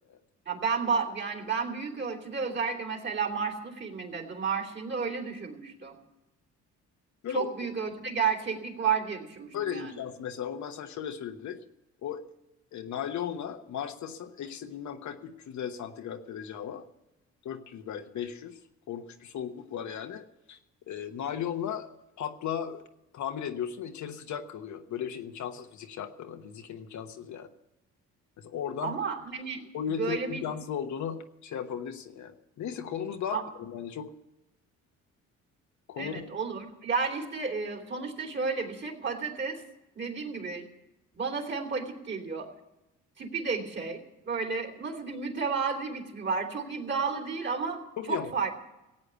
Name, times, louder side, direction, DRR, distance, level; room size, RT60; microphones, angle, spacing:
voice 1, 0.5-6.0 7.3-10.0 28.8-29.6 29.9-30.4 33.3-33.4 36.0-39.6 39.9-40.7 41.1-42.5 43.2-47.8 48.1-48.5, right 5 dB, 35° right, 3 dB, 3.0 m, -32 dB
voice 2, 9.5-11.6 12.0-12.2 12.7-16.8 17.4-18.6 18.9-20.6 20.9-21.9 22.2-22.8 23.1-27.5 28.4-29.0 29.7-34.1 35.9-36.3 48.0-48.3, left 8 dB, 70° left, 6 dB, 1.3 m, -36 dB
16.5 x 8.6 x 8.2 m, 0.96 s
cardioid pair, 90°, 30 cm